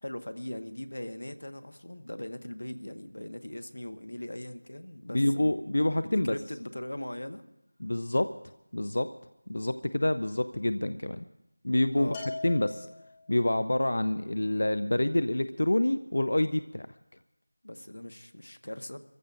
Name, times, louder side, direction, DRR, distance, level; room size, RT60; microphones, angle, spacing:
voice 1, 0.0-7.4 11.9-12.2 17.6-19.0, left 1 dB, 90° left, 9 dB, 1.1 m, -40 dB
voice 2, 5.1-6.3 7.8-8.3 8.7-9.1 9.5-11.2 11.6-12.2 12.4-12.9 13.3-16.9, left 1 dB, 55° left, 11 dB, 0.4 m, -27 dB
Bell, 12.1-13.5, left 3 dB, 10° left, 0.9 m, -41 dB
28.0 x 14.5 x 2.6 m, 0.86 s
figure-of-eight pair, 180°, 0 cm